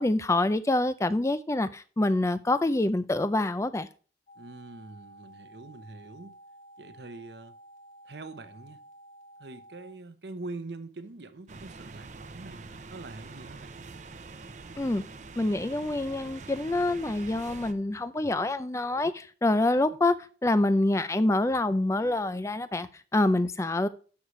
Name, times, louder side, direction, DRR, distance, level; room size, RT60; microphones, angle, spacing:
voice 1, 0.0-3.9 14.8-15.0 15.4-20.1 20.4-23.9, left 2 dB, 15° left, 0.4 m, -26 dB
sound 1, 4.3-9.9, right 1 dB, 45° left, 1.4 m, -52 dB
voice 2, 4.4-6.4 6.8-7.5 8.0-8.8 9.4-13.7, right 3 dB, 70° right, 0.8 m, -44 dB
sound 2, 11.5-17.7, right 3 dB, 45° right, 0.7 m, -45 dB
11.5 x 6.3 x 3.1 m
head